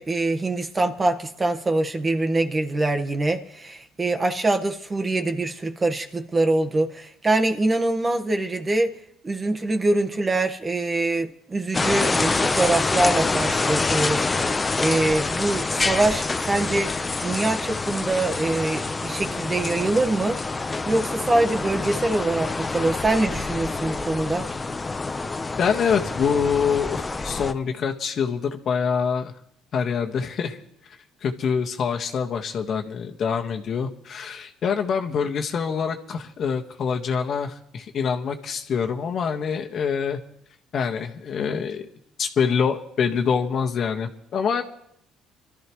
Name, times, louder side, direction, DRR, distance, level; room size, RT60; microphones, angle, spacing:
voice 1, 0.0-8.9 9.2-16.9 17.2-20.4 20.8-24.5, right 2 dB, 25° right, 5 dB, 1.4 m, -24 dB
sound 1, 11.7-27.5, left 3 dB, 25° left, 0.9 m, -26 dB
voice 2, 25.6-29.3 29.7-30.6 31.2-40.2 40.7-41.9 42.2-44.6, left 6 dB, 55° left, 4 dB, 1.6 m, -25 dB
23.5 x 13.0 x 3.2 m, 0.74 s
supercardioid pair, 85°, 0 cm